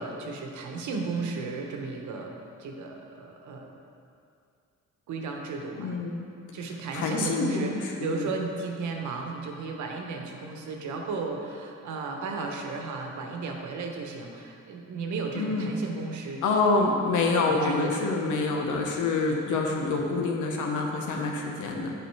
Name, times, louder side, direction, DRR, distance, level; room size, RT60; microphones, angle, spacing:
voice 1, 0.0-3.7 5.1-6.0 6.5-16.4 17.3-18.1, right 4 dB, 75° right, 2 dB, 1.1 m, -34 dB
voice 2, 5.8-6.3 6.9-8.2 15.3-15.8 16.4-21.9, left 3 dB, 80° left, 1 dB, 1.1 m, -27 dB
7.6 x 5.0 x 4.7 m, 2.4 s
cardioid pair, 90°, 30 cm